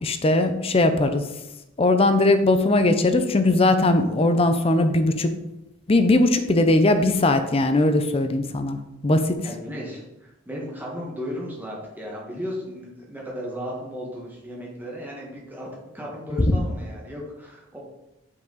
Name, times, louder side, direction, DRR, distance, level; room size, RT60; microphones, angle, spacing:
voice 1, 0.0-1.2 1.8-5.3 5.9-9.4, left 2 dB, 30° left, 8 dB, 0.5 m, -20 dB
voice 2, 9.4-15.7 15.9-17.8, equal, 10° right, -4 dB, 1.5 m, -35 dB
5.8 x 4.8 x 3.9 m, 0.92 s
head